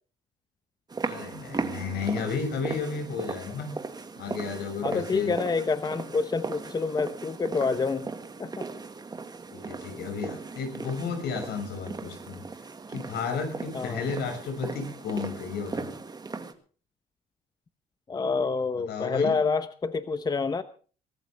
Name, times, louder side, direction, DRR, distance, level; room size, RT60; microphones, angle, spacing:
sound 1, 0.9-16.5, right 4 dB, 25° right, 1.9 m, -37 dB
voice 1, 1.0-3.7 4.2-5.3 9.5-12.4 12.9-15.9 18.8-19.3, left 5 dB, 75° left, 6 dB, 6.4 m, -33 dB
voice 2, 4.8-8.1 8.4-8.7 13.7-14.0 18.1-20.6, left 4 dB, 25° left, 12 dB, 0.9 m, -27 dB
22.5 x 14.0 x 3.5 m, 0.39 s
cardioid pair, 110°, 17 cm